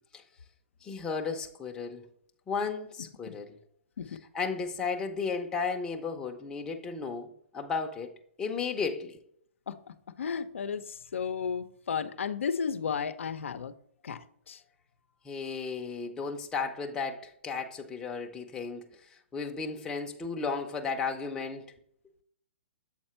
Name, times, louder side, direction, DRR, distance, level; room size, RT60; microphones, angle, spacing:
voice 1, 0.8-2.1 2.5-3.6 4.3-8.1 8.4-9.2 15.2-18.9 19.3-21.7, left 5 dB, 10° left, 0.6 m, -34 dB
voice 2, 10.2-13.7 14.0-14.6, left 6 dB, 85° left, 0.6 m, -33 dB
7.4 x 4.3 x 4.3 m
hypercardioid pair, 155°, 7 cm